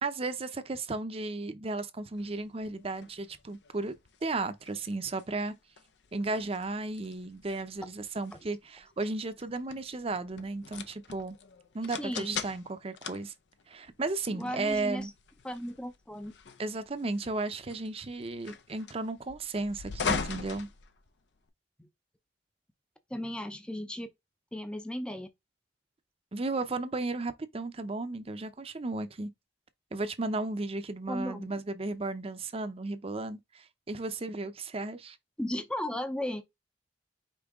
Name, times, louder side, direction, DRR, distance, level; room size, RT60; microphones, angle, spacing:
voice 1, 0.0-3.9 4.2-5.5 6.1-11.4 11.7-13.3 13.7-15.1 16.6-20.7 26.3-29.3 29.9-35.2, right 3 dB, 35° right, 0.6 m, -34 dB
sound 1, 2.1-21.5, left 5 dB, 80° left, 0.6 m, -42 dB
voice 2, 12.0-12.4 14.3-15.1 15.4-16.3 21.8-21.9 23.1-24.1 24.5-25.3 31.1-31.5 35.4-36.4, left 1 dB, 5° left, 0.5 m, -35 dB
5.2 x 2.8 x 3.5 m
head